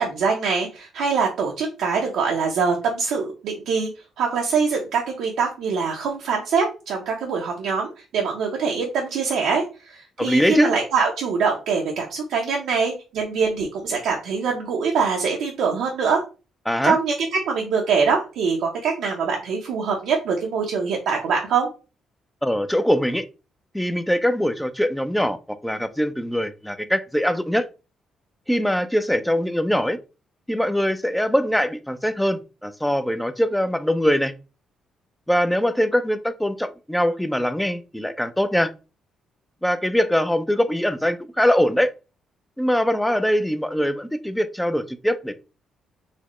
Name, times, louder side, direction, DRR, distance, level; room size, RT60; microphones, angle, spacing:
voice 1, 0.0-3.9 4.2-16.2 16.8-21.7, right 5 dB, 80° right, 0.6 m, -23 dB
voice 2, 10.2-10.7 16.7-17.0 22.4-23.2 23.7-27.7 28.5-30.0 30.5-34.3 35.3-38.7 39.6-41.9 42.6-45.4, equal, 5° left, 0.4 m, -22 dB
4.1 x 2.1 x 3.0 m
cardioid pair, 90°, 0 cm